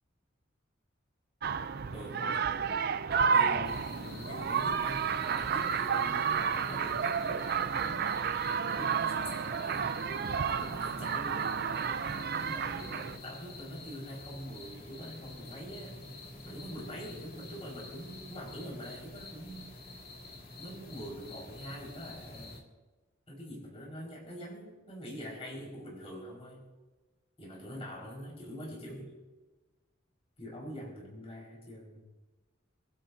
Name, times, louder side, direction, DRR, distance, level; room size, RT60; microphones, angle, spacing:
sound 1, 1.4-13.2, right 6 dB, 55° right, 0.5 m, -31 dB
voice 1, 1.9-2.6 3.3-9.9 10.5-11.5 12.4-16.0 16.4-19.7 20.6-22.6 23.3-26.7 27.4-29.1 30.4-32.1, equal, 30° left, -3 dB, 4.9 m, -44 dB
sound 2, 3.6-22.6, left 2 dB, 50° left, 2.2 m, -48 dB
27.5 x 12.0 x 2.7 m, 1.2 s
head